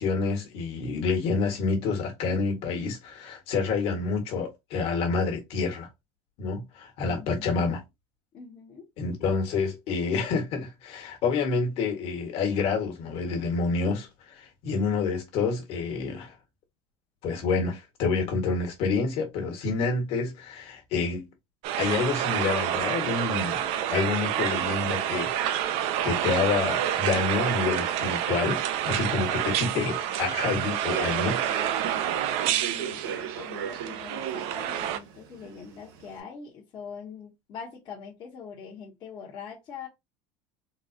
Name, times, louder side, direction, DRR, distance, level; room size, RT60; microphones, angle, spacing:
voice 1, 0.0-5.9 6.4-7.8 9.0-16.3 17.2-21.3 21.8-23.6 23.9-25.7 26.0-31.4, left 4 dB, 55° left, 1.4 m, -28 dB
voice 2, 7.0-7.7 8.3-8.8 32.5-39.9, left 6 dB, 40° left, 0.9 m, -43 dB
sound 1, 21.6-35.0, right 11 dB, 60° right, 0.5 m, -28 dB
Human voice / Subway metro underground, 30.6-36.2, right 8 dB, 85° right, 0.8 m, -37 dB
3.9 x 2.4 x 2.7 m
cardioid pair, 140°, 12 cm